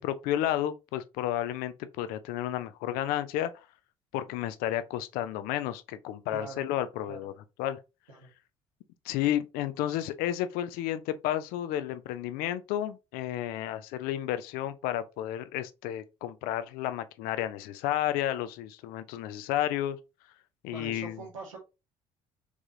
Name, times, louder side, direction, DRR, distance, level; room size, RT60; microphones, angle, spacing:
voice 1, 0.0-3.5 4.1-7.3 7.6-7.8 9.0-20.0 20.6-21.2, left 12 dB, 60° left, 0.5 m, -32 dB
voice 2, 6.3-6.7 7.1-7.2 8.1-8.3 20.7-21.6, right 3 dB, 80° right, 1.6 m, -43 dB
4.8 x 3.6 x 2.7 m
figure-of-eight pair, 50°, 17 cm